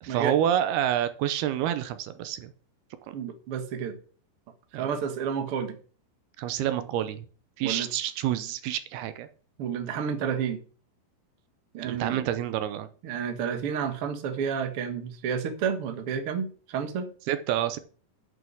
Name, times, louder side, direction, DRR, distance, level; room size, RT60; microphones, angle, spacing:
voice 1, 0.0-2.5 4.7-4.9 6.4-7.3 7.6-9.3 11.8-12.9 17.3-17.8, right 11 dB, 80° right, 11 dB, 2.6 m, -28 dB
voice 2, 3.1-4.0 4.7-5.8 7.6-7.9 9.6-10.6 11.7-12.2 13.0-17.1, right 7 dB, 65° right, 6 dB, 1.4 m, -30 dB
8.5 x 6.3 x 7.5 m, 0.40 s
omnidirectional pair, 4.7 m